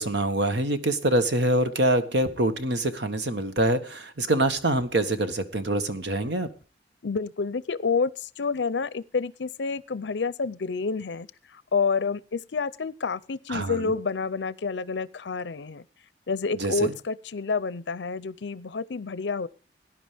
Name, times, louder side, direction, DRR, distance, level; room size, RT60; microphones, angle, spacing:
voice 1, 0.0-6.5 13.5-13.9 16.6-16.9, right 1 dB, 75° right, 1.6 m, -25 dB
voice 2, 7.0-11.3 11.7-15.8 16.3-19.5, left 4 dB, 75° left, 0.6 m, -29 dB
18.5 x 11.0 x 3.5 m
head